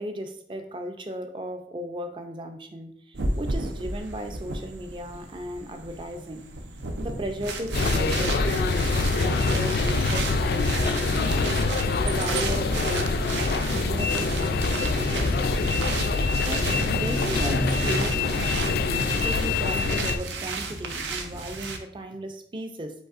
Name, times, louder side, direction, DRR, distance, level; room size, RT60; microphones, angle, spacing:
voice 1, 0.0-6.4 7.0-11.6 12.0-15.8 16.1-16.2 16.5-18.8 19.2-22.9, right 1 dB, 30° right, 6 dB, 0.4 m, -36 dB
sound 1, 3.1-21.8, right 3 dB, 85° right, 0.6 m, -33 dB
sound 2, 7.7-20.2, left 4 dB, 60° left, 0.3 m, -25 dB
5.2 x 4.0 x 2.4 m, 0.65 s
head